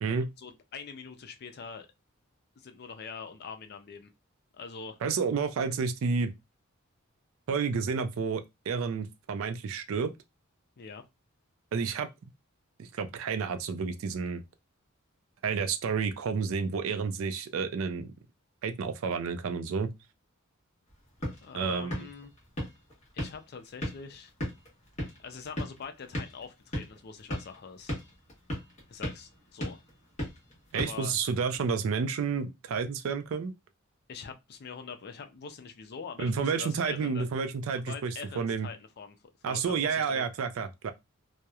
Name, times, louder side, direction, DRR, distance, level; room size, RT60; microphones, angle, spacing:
voice 1, 0.4-1.9 2.6-4.1 4.5-5.0 10.8-11.0 21.4-22.3 23.1-24.3 25.2-27.9 28.9-29.8 30.7-31.1 34.1-37.3 37.8-39.2 39.5-40.2, left 5 dB, 50° left, 0.4 m, -43 dB
voice 2, 5.0-6.3 7.5-10.1 11.7-12.1 12.8-14.4 15.4-18.1 18.6-19.9 21.5-22.0 30.7-33.5 36.2-38.7 39.4-40.9, right 5 dB, 70° right, 0.3 m, -30 dB
sound 1, 20.9-31.7, equal, 35° left, 1.0 m, -39 dB
2.8 x 2.0 x 2.3 m
head